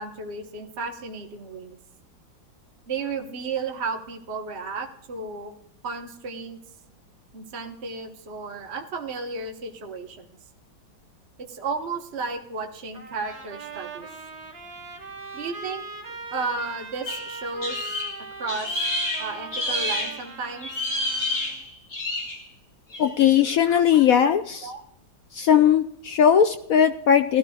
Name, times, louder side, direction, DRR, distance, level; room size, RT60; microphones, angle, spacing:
voice 1, 0.0-1.8 2.9-5.5 5.8-6.6 7.3-10.3 11.4-14.1 15.3-15.8 16.1-17.9 18.4-18.8 19.2-20.7 24.6-24.8, right 4 dB, 40° right, 3 dB, 1.3 m, -33 dB
Trumpet, 12.9-21.6, right 4 dB, 65° right, 2.4 m, -40 dB
sound 1, 17.1-20.3 20.6-22.5 22.9-23.2 24.0-24.2, left 1 dB, 45° left, 3.6 m, -29 dB
voice 2, 23.0-24.7 25.3-27.4, left 8 dB, 70° left, 9 dB, 0.8 m, -19 dB
19.5 x 13.0 x 2.4 m, 0.74 s
omnidirectional pair, 2.1 m